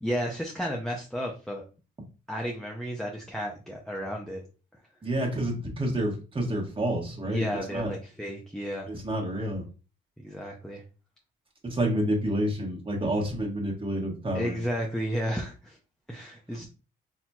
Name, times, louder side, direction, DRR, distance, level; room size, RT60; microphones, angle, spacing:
voice 1, 0.0-1.6 2.3-4.4 7.3-8.9 10.2-10.8 14.3-15.8 16.1-16.7, equal, ahead, 0 dB, 0.6 m, -32 dB
voice 2, 5.0-7.4 7.7-7.9 8.9-9.6 11.6-14.6 16.5-16.7, right 1 dB, 25° right, -1 dB, 1.4 m, -29 dB
4.2 x 2.8 x 2.3 m, 0.33 s
cardioid pair, 90°, 20 cm